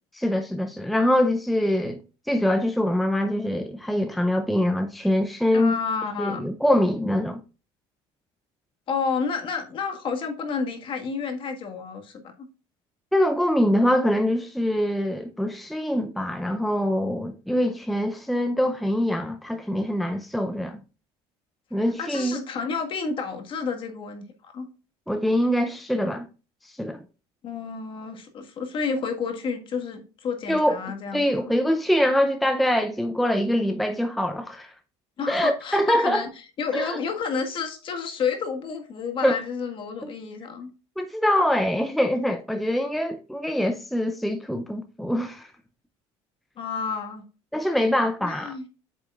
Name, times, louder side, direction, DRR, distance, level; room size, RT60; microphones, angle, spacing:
voice 1, 0.1-2.0 2.3-5.8 6.2-7.4 13.1-20.8 21.7-22.4 25.1-26.3 26.6-27.0 30.5-30.8 31.1-34.7 35.3-36.3 36.7-37.0 39.2-39.4 40.0-40.1 41.0-45.5 47.5-48.5, left 1 dB, ahead, 0.5 m, -24 dB
voice 2, 5.5-6.4 8.9-12.5 21.8-24.7 27.4-31.5 35.2-36.3 36.6-40.7 46.6-47.2 48.2-48.7, left 5 dB, 45° left, 1.6 m, -30 dB
8.4 x 6.8 x 2.4 m
cardioid pair, 120°, 12 cm